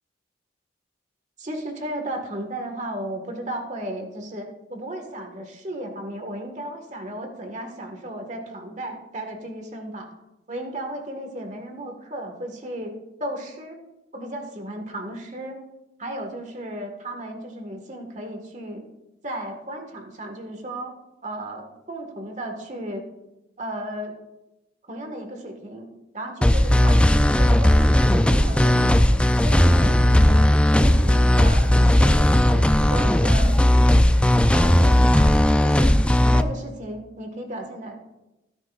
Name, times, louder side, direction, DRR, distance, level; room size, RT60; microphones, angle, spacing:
voice 1, 1.4-10.1 10.5-12.9 13.2-13.8 14.1-15.6 16.0-18.8 19.2-20.9 21.2-23.1 23.6-24.1 24.9-25.9 26.1-29.2 29.4-30.4 30.8-33.6 34.5-35.3 35.6-36.0 36.2-38.0, right 1 dB, 40° right, 4 dB, 1.7 m, -34 dB
sound 1, 26.4-36.4, left 1 dB, 5° left, 0.3 m, -17 dB
16.5 x 10.0 x 2.5 m, 0.98 s
head